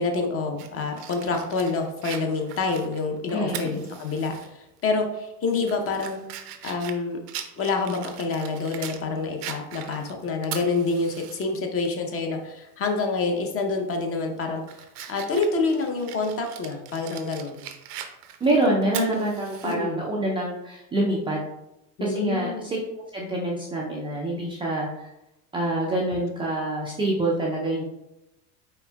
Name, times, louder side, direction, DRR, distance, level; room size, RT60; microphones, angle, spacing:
voice 1, 0.0-6.2 6.6-7.2 7.6-14.6 15.1-17.6 19.6-20.0 22.0-22.6, left 3 dB, 30° left, 3 dB, 0.7 m, -27 dB
Fire, 0.6-4.5 4.9-5.0 5.5-9.0 9.4-11.4 11.8-11.9 13.4-13.7 14.2-19.8, right 9 dB, 80° right, 0.7 m, -40 dB
voice 2, 3.3-3.8 18.4-21.4 22.0-22.8 23.1-25.1 25.5-27.8, right 1 dB, 10° right, -4 dB, 0.4 m, -26 dB
4.4 x 4.2 x 2.2 m, 0.89 s
hypercardioid pair, 100°, 47 cm